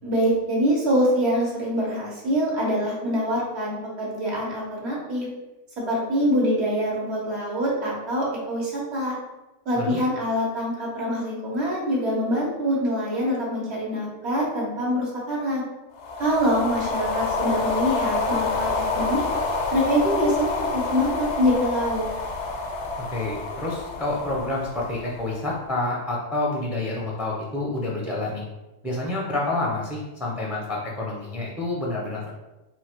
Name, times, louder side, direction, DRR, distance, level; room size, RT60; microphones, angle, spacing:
voice 1, 0.0-5.3 5.8-9.1 9.6-15.6 16.2-19.2 19.7-22.0, equal, 60° right, -4 dB, 1.5 m, -24 dB
sound 1, 16.0-25.4, left 3 dB, 70° left, 0.9 m, -28 dB
voice 2, 23.1-28.4 28.8-32.3, left 2 dB, ahead, -3 dB, 0.6 m, -28 dB
4.0 x 2.5 x 4.4 m, 1.1 s
omnidirectional pair, 1.3 m